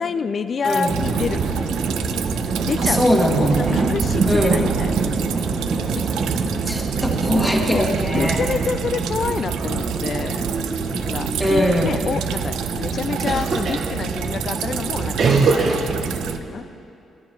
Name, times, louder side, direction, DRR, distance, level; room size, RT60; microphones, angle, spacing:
voice 1, 0.0-1.5 2.6-4.9 6.0-6.1 7.7-7.9 8.1-10.5 10.9-16.1 16.5-16.6, left 5 dB, 50° left, 12 dB, 0.5 m, -28 dB
voice 2, 0.6-1.0 2.8-3.9 4.3-4.7 6.7-8.4 11.4-12.0, equal, 5° left, -1 dB, 1.4 m, -21 dB
Drip, 0.6-16.4, right 9 dB, 90° right, 0.4 m, -33 dB
sound 1, 0.9-16.4, right 4 dB, 60° right, 1.0 m, -24 dB
11.5 x 9.7 x 4.6 m, 2.5 s
cardioid pair, 80°, 0 cm